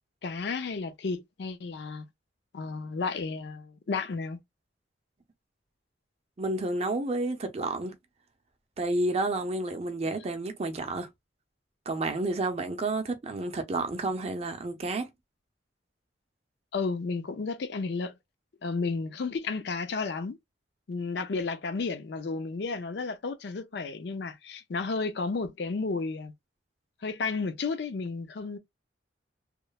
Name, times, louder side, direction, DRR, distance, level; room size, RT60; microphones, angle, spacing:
voice 1, 0.2-2.1 2.5-4.4 16.7-18.1 18.6-20.4 20.9-26.3 27.0-28.6, left 4 dB, 60° left, 0.4 m, -32 dB
voice 2, 6.4-7.9 8.8-11.1 11.9-15.1, right 2 dB, 35° right, 0.5 m, -30 dB
3.0 x 2.0 x 2.2 m
head